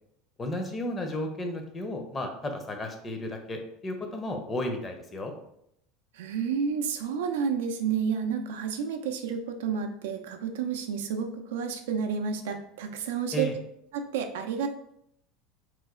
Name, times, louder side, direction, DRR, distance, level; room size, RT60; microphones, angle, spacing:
voice 1, 0.4-5.3 13.3-13.5, left 1 dB, 25° left, 4 dB, 0.6 m, -33 dB
voice 2, 6.1-13.5 13.9-14.7, right 6 dB, 90° right, 6 dB, 0.4 m, -30 dB
3.0 x 2.1 x 3.6 m, 0.74 s
supercardioid pair, 115°, 0 cm